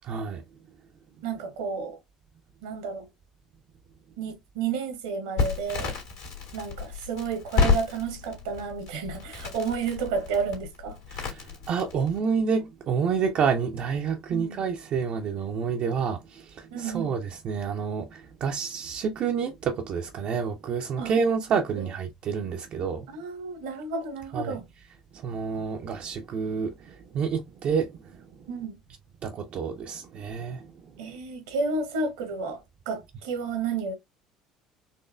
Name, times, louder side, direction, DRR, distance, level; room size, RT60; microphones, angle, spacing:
voice 1, 0.0-0.4 11.1-23.1 24.3-24.6 25.1-28.2 29.2-30.7, right 6 dB, 50° right, 0.5 m, -29 dB
voice 2, 1.2-2.0 2.6-3.1 4.2-6.0 6.5-11.0 14.3-14.6 16.7-17.1 21.0-21.1 21.8-21.9 23.1-24.7 28.5-28.8 31.0-33.9, right 5 dB, 70° right, 1.0 m, -31 dB
Crackle, 5.4-12.2, left 5 dB, 75° left, 1.7 m, -30 dB
4.2 x 2.9 x 2.3 m
figure-of-eight pair, 60°, 3 cm